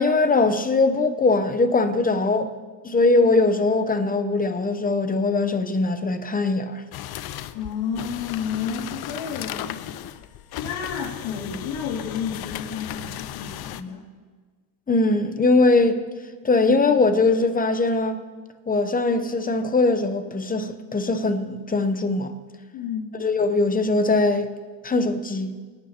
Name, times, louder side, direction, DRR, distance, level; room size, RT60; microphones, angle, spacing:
voice 1, 0.0-2.5 2.8-6.8 14.9-16.1 16.4-18.2 18.7-22.3 23.2-24.5 24.8-25.5, left 3 dB, 15° left, 0.7 m, -21 dB
sound 1, 6.9-13.8, left 12 dB, 50° left, 0.6 m, -36 dB
voice 2, 7.5-9.8 10.6-14.0 22.7-23.1, left 7 dB, 90° left, 2.7 m, -31 dB
25.0 x 9.3 x 2.9 m
cardioid pair, 120°, 49 cm